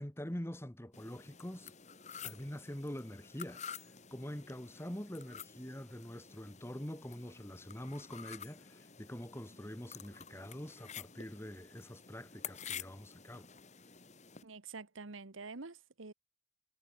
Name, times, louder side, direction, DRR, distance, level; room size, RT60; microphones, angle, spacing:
voice 1, 0.0-1.7 2.2-3.8 4.1-13.5, equal, 10° left, 1.4 m, -45 dB
sound 1, 0.9-14.4, left 7 dB, 35° left, 2.8 m, -50 dB
voice 2, 14.4-16.1, right 4 dB, 85° right, 1.3 m, -47 dB
head